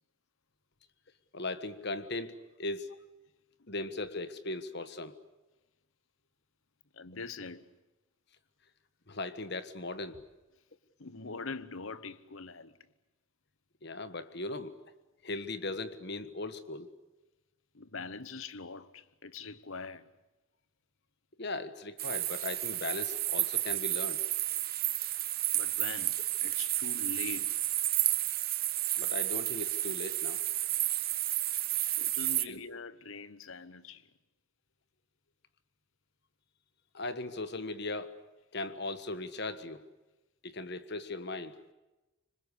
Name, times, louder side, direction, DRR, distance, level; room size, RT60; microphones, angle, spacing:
voice 1, 1.3-2.9 3.7-5.1 9.1-10.2 13.8-14.8 15.2-16.9 21.4-24.2 29.0-30.4 32.5-32.6 36.9-38.1 38.5-39.8 40.4-41.6, left 2 dB, 50° left, 1.5 m, -38 dB
voice 2, 6.9-7.7 11.0-12.8 17.7-20.1 25.5-27.7 32.0-34.1, left 4 dB, 65° left, 1.1 m, -43 dB
sound 1, 22.0-32.4, right 15 dB, 45° right, 1.1 m, -31 dB
26.0 x 25.5 x 8.4 m
head